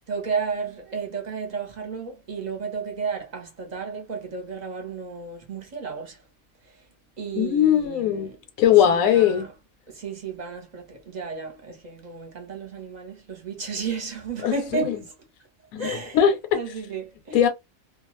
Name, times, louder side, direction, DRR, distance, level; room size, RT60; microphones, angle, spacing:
voice 1, 0.1-6.2 7.2-8.4 8.8-9.5 9.9-15.1 15.8-16.2 16.5-17.4, right 5 dB, 35° right, 0.8 m, -33 dB
voice 2, 7.3-8.3 8.6-9.5 14.4-14.5 14.9-15.0 15.7-15.8 16.1-16.6 17.3-17.5, left 9 dB, 80° left, 1.1 m, -19 dB
2.4 x 2.3 x 3.0 m
omnidirectional pair, 1.4 m